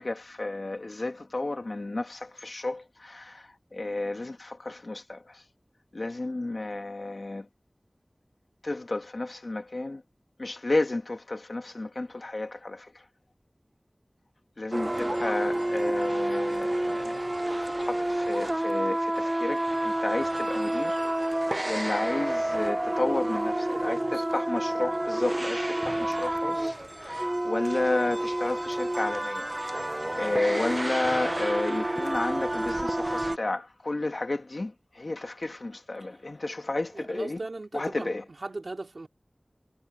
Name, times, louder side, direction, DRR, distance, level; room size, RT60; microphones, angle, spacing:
voice 1, 0.0-5.4 5.9-7.5 8.6-10.0 10.4-13.0 14.6-21.1 21.7-26.8 27.0-37.4 37.7-38.2, left 2 dB, 65° left, 2.5 m, -32 dB
sound 1, 14.7-33.4, right 1 dB, 30° right, 0.8 m, -29 dB
voice 2, 23.7-24.3 26.4-26.8 36.1-36.2 36.9-39.1, right 2 dB, 75° right, 4.7 m, -39 dB
wide cardioid pair, 55°, 0 cm